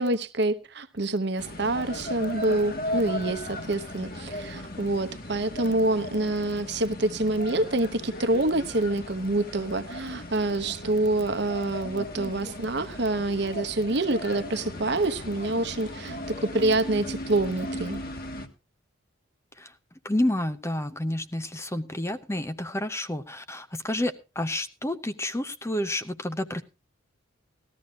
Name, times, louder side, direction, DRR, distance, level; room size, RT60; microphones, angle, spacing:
voice 1, 0.0-18.0, right 2 dB, 55° right, 1.0 m, -26 dB
sound 1, 1.4-18.5, left 1 dB, 45° left, 1.4 m, -37 dB
voice 2, 20.0-26.6, left 1 dB, 15° left, 0.6 m, -30 dB
19.0 x 13.5 x 2.4 m
head